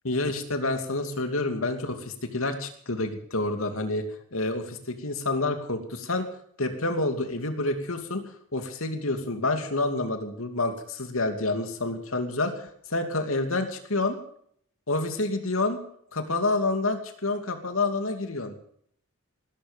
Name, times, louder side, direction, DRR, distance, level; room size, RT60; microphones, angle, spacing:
voice 1, 0.0-4.1 4.3-6.3 6.6-8.2 8.5-14.2 14.9-15.8 16.1-18.5, left 2 dB, 80° left, 6 dB, 2.8 m, -28 dB
19.0 x 13.0 x 5.3 m, 0.63 s
head